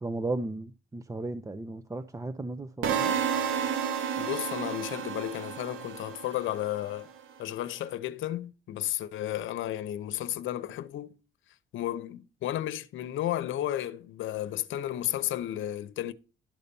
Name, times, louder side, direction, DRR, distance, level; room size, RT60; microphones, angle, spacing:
voice 1, 0.0-3.1, right 2 dB, 15° right, 0.7 m, -35 dB
sound 1, 2.8-6.9, right 7 dB, 80° right, 1.3 m, -31 dB
voice 2, 4.2-7.1 7.4-11.2 11.7-16.1, left 13 dB, 80° left, 0.8 m, -33 dB
12.0 x 4.1 x 6.9 m
cardioid pair, 90°, 20 cm